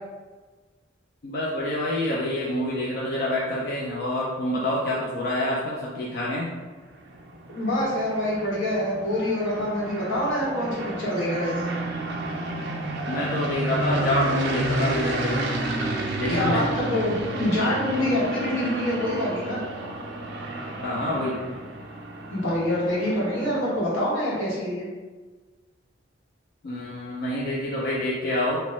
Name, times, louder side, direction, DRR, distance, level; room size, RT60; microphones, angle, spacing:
voice 1, 1.2-6.5 13.0-15.4 16.2-16.7 20.8-21.4 26.6-28.6, left 1 dB, 55° left, -5 dB, 0.4 m, -27 dB
sound 1, 6.7-23.9, right 1 dB, 60° right, 0.4 m, -31 dB
voice 2, 7.5-11.7 16.3-19.6 22.3-24.9, left 1 dB, 80° left, -7 dB, 1.0 m, -26 dB
2.8 x 2.1 x 3.0 m, 1.4 s
head